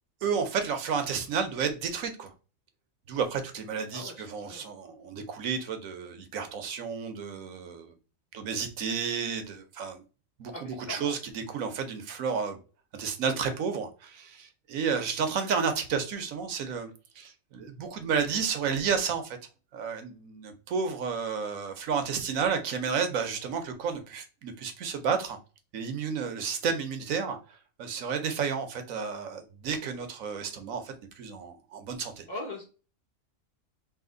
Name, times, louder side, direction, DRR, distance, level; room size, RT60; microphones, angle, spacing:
voice 1, 0.2-2.3 3.1-7.9 8.3-10.0 10.4-12.6 12.9-19.4 19.7-25.4 25.7-32.3, right 6 dB, 90° right, 1.2 m, -31 dB
voice 2, 3.9-4.7 10.5-11.2 32.3-32.6, left 2 dB, 35° left, 1.2 m, -40 dB
3.3 x 2.7 x 3.8 m
omnidirectional pair, 1.4 m